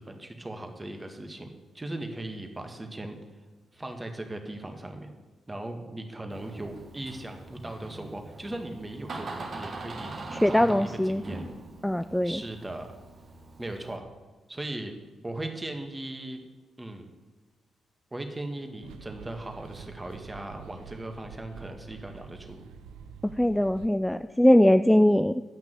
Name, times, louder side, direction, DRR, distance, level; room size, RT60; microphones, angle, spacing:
voice 1, 0.0-3.2 3.7-5.1 5.5-10.1 10.5-11.4 12.2-12.9 13.6-14.1 14.5-14.9 15.2-16.4 16.8-17.1 18.1-22.6, right 1 dB, 20° right, 5 dB, 1.8 m, -38 dB
Door, 6.3-14.0, right 2 dB, 55° right, 1.9 m, -42 dB
voice 2, 10.3-11.2 11.8-12.4 23.2-25.4, left 1 dB, 5° left, 11 dB, 0.4 m, -21 dB
sound 1, 18.8-23.9, right 7 dB, 80° right, 0.6 m, -47 dB
9.4 x 5.9 x 7.8 m, 1.3 s
hypercardioid pair, 40°, 0 cm